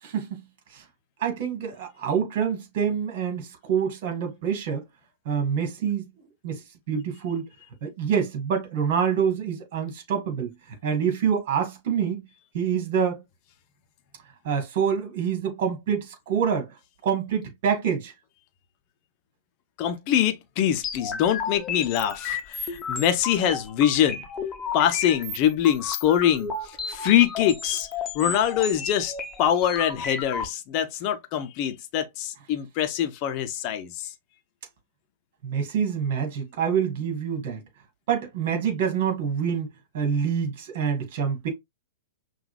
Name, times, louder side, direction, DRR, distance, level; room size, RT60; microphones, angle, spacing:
voice 1, 1.2-4.8 5.3-6.1 6.4-6.6 6.9-7.5 7.8-10.5 10.8-12.3 12.5-13.2 14.4-16.7 17.0-18.1 35.4-37.6 38.1-41.5, right 7 dB, 50° right, 2.0 m, -26 dB
voice 2, 19.8-24.2 24.7-26.5 26.9-27.9 28.1-29.1 29.4-34.1, left 10 dB, 40° left, 0.8 m, -24 dB
sound 1, 20.8-30.4, left 5 dB, 20° left, 1.0 m, -33 dB
5.8 x 2.6 x 2.4 m
figure-of-eight pair, 110°, 0 cm